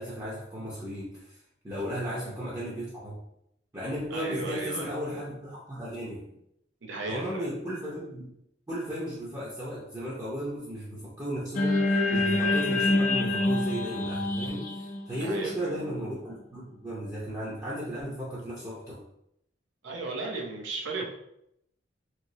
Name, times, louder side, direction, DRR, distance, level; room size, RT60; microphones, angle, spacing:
voice 1, 0.0-1.4 1.6-3.2 3.7-6.3 7.1-8.3 8.7-11.8 12.1-19.0, equal, 20° right, -8 dB, 0.6 m, -35 dB
voice 2, 4.1-5.2 6.8-7.5 11.0-11.1 15.2-15.7 19.8-21.0, right 3 dB, 90° right, 0 dB, 0.7 m, -35 dB
sound 1, 11.5-15.9, left 2 dB, 40° left, 0.5 m, -26 dB
3.1 x 2.9 x 2.7 m, 0.78 s
head